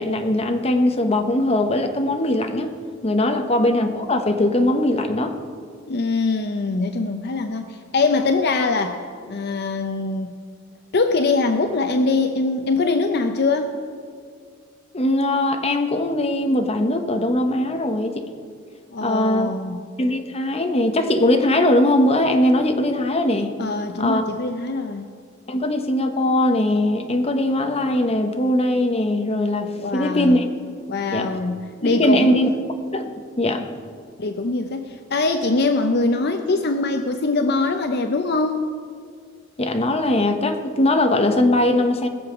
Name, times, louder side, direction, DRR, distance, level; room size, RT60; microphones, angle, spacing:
voice 1, 0.0-2.7 3.0-5.4 14.9-18.2 19.0-19.5 20.0-23.5 24.0-24.2 25.5-30.5 31.1-31.3 31.8-32.5 32.9-33.1 33.4-33.7 39.6-42.1, left 1 dB, 30° left, 5 dB, 0.9 m, -20 dB
voice 2, 5.9-9.0 9.3-10.3 10.9-13.8 18.9-19.8 23.6-25.1 29.8-30.4 30.9-32.4 34.2-38.6, left 3 dB, 50° left, 7 dB, 0.6 m, -22 dB
20.0 x 7.0 x 5.9 m, 2.1 s
head